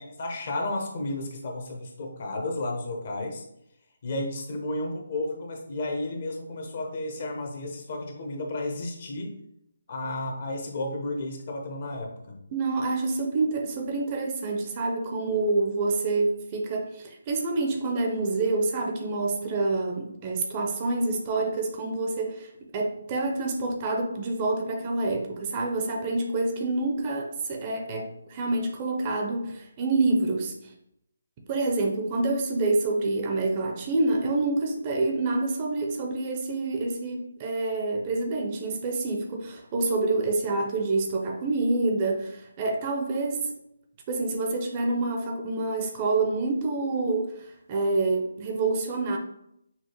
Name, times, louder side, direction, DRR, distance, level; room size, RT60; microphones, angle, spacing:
voice 1, 0.0-3.4 4.0-9.4 9.9-12.4, left 2 dB, 45° left, 1 dB, 0.9 m, -32 dB
voice 2, 12.5-30.7 31.5-43.5 44.1-49.2, right 3 dB, 25° right, 1 dB, 0.6 m, -27 dB
5.7 x 2.4 x 3.0 m, 0.77 s
figure-of-eight pair, 145°, 0 cm